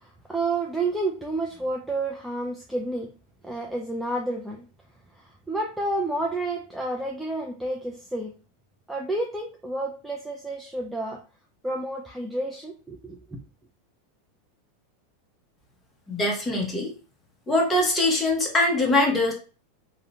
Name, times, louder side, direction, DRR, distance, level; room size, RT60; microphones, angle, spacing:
voice 1, 0.0-3.1 3.4-4.6 5.1-8.3 8.9-11.2 11.6-13.4, right 2 dB, 5° right, 0 dB, 0.3 m, -30 dB
voice 2, 16.1-16.9 17.5-19.3, left 2 dB, 15° left, -1 dB, 0.7 m, -22 dB
2.7 x 2.1 x 2.7 m, 0.37 s
supercardioid pair, 145°, 0 cm